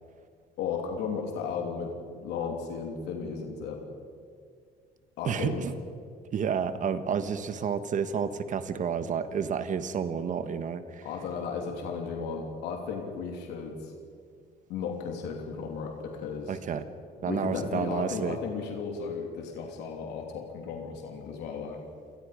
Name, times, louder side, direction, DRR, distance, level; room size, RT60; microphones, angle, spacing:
voice 1, 0.6-1.9 2.2-3.8 5.2-5.6 11.0-13.9 14.7-16.6 17.2-21.8, left 5 dB, 90° left, 2 dB, 3.1 m, -35 dB
voice 2, 5.2-5.7 6.3-11.1 16.5-16.8 17.2-18.4, right 7 dB, 50° right, 11 dB, 1.4 m, -30 dB
28.0 x 19.0 x 5.1 m, 2.2 s
cardioid pair, 110°, 17 cm